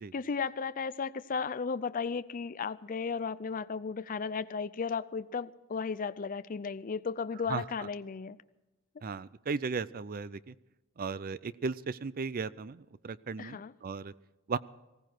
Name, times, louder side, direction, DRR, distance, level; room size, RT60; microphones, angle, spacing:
voice 1, 0.1-8.4 13.4-13.7, left 5 dB, 40° left, 0.5 m, -35 dB
voice 2, 7.5-7.9 9.0-10.5 11.0-14.1 14.5-14.6, right 5 dB, 45° right, 0.5 m, -36 dB
19.5 x 16.0 x 4.6 m
head